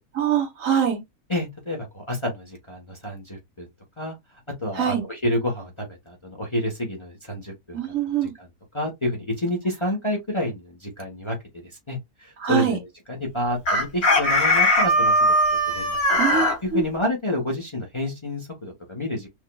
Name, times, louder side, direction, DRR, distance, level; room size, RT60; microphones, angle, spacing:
voice 1, 0.1-1.0 4.7-5.0 7.7-8.3 12.4-12.8 16.2-16.8, right 8 dB, 60° right, 1.3 m, -24 dB
voice 2, 1.3-3.7 4.0-4.2 4.6-7.8 8.2-8.5 8.7-12.8 13.1-15.3 15.7-19.3, left 1 dB, 25° left, 0.9 m, -29 dB
Chicken rooster, 13.7-16.5, left 1 dB, 75° left, 3.0 m, -19 dB
6.0 x 2.3 x 2.2 m
omnidirectional pair, 1.6 m